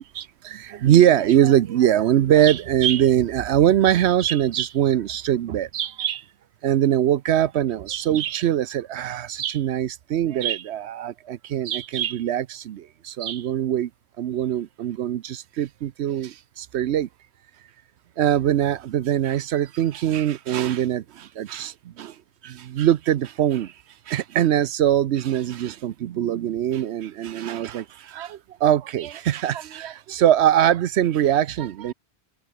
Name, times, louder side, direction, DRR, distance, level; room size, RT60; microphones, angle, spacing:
voice 1, 0.1-6.2 6.6-13.9 14.2-17.1 18.2-22.2 22.4-23.7 24.1-31.9, right 11 dB, 85° right, 0.9 m, -22 dB
omnidirectional pair, 1.1 m